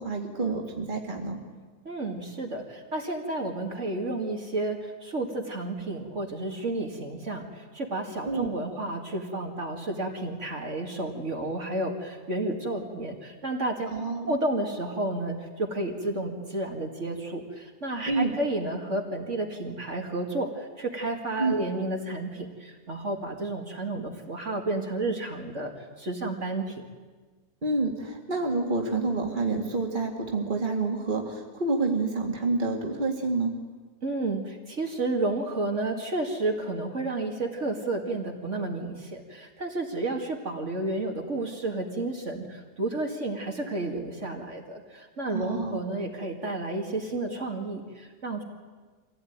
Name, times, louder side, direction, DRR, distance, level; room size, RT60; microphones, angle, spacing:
voice 1, 0.0-1.4 8.3-8.5 13.9-14.4 18.1-18.3 21.4-21.6 27.6-33.5 45.3-45.8, right 3 dB, 30° right, 2 dB, 2.3 m, -28 dB
voice 2, 1.8-13.9 14.3-26.8 34.0-48.4, right 2 dB, 50° right, 2 dB, 2.5 m, -31 dB
24.5 x 16.5 x 9.5 m, 1.4 s
omnidirectional pair, 1.6 m